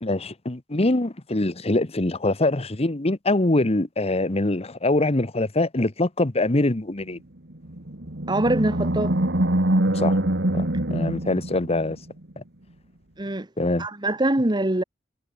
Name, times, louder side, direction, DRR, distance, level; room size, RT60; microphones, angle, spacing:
voice 1, 0.0-7.2 9.9-10.2 10.5-12.0 12.4-12.5 13.6-13.9, left 2 dB, 30° left, 1.2 m, -24 dB
Animal, 7.6-12.1, right 1 dB, 60° right, 2.5 m, -24 dB
voice 2, 8.3-9.1 13.2-13.5 13.8-14.8, right 1 dB, 20° right, 1.4 m, -23 dB
head